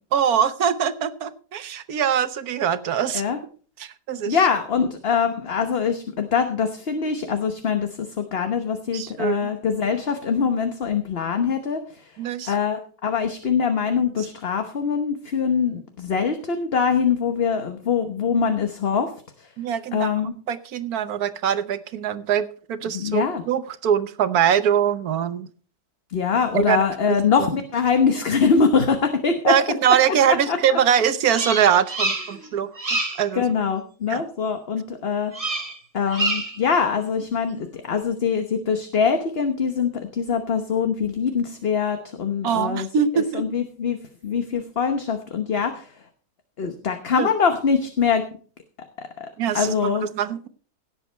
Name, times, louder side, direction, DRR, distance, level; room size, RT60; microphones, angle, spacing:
voice 1, 0.1-3.2 3.8-4.4 8.9-9.4 12.2-12.5 19.6-20.1 20.5-25.5 26.5-26.8 27.1-27.5 29.5-33.4 34.1-34.2 42.4-43.4 47.2-47.3 49.4-50.5, right 8 dB, 75° right, 12 dB, 1.4 m, -23 dB
voice 2, 4.3-12.1 12.5-19.1 19.4-19.5 19.9-20.3 22.9-23.4 26.1-29.5 30.3-30.8 32.3-32.5 33.3-35.3 35.9-42.9 43.1-44.0 44.2-45.9 46.6-48.2 49.0-49.3 49.5-50.1, left 6 dB, 45° left, 7 dB, 1.2 m, -23 dB
Bird vocalization bird call bird song, 31.3-32.5 32.8-33.3 35.3-35.8 36.1-36.6, right 2 dB, 25° right, 1.4 m, -27 dB
17.0 x 7.4 x 4.4 m, 0.42 s
omnidirectional pair, 1.6 m